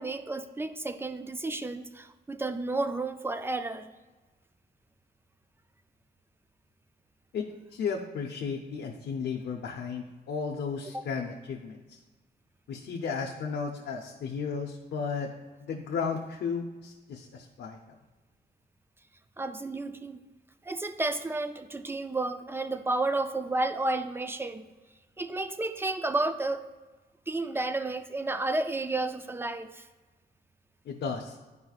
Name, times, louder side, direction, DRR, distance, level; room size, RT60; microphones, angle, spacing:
voice 1, 0.0-3.9 19.4-20.2 20.7-24.6 25.2-26.7 27.3-29.8, right 2 dB, 15° right, 10 dB, 0.3 m, -31 dB
voice 2, 7.3-12.0 12.7-15.3 15.7-18.0 30.9-31.3, left 5 dB, 80° left, 0 dB, 0.6 m, -34 dB
11.0 x 4.9 x 2.4 m, 1.2 s
wide cardioid pair, 125°, 18 cm